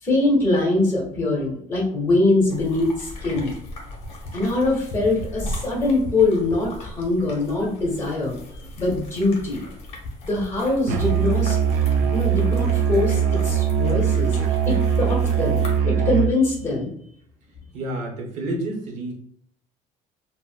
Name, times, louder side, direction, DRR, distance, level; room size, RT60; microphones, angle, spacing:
voice 1, 0.0-3.5 4.3-8.3 8.7-9.7 10.2-11.6 12.1-14.3 14.7-16.9, left 2 dB, 15° left, -3 dB, 1.1 m, -23 dB
sound 1, 2.5-15.8, left 1 dB, 40° left, 0.8 m, -38 dB
Musical instrument, 10.9-16.4, right 7 dB, 80° right, 0.4 m, -21 dB
voice 2, 17.4-19.2, right 1 dB, 50° right, 1 dB, 0.9 m, -30 dB
3.8 x 2.0 x 2.2 m, 0.65 s
cardioid pair, 155°, 15 cm